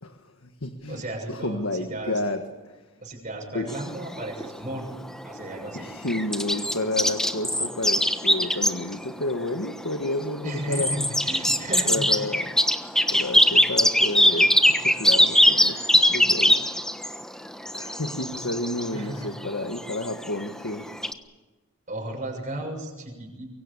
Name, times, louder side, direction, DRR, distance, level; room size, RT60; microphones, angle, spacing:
voice 1, 0.0-1.0 1.3-2.8 3.5-3.7 5.7-10.9 11.9-12.5 13.1-16.6 17.7-20.8, left 2 dB, 80° left, 6 dB, 1.7 m, -31 dB
voice 2, 0.9-2.2 3.0-4.9 5.2-5.9 10.4-12.3 18.9-19.3 21.9-23.5, right 1 dB, 35° right, 1 dB, 6.6 m, -34 dB
sound 1, 3.7-21.1, left 1 dB, 5° left, 1.2 m, -23 dB
24.0 x 23.0 x 8.5 m, 1.2 s
head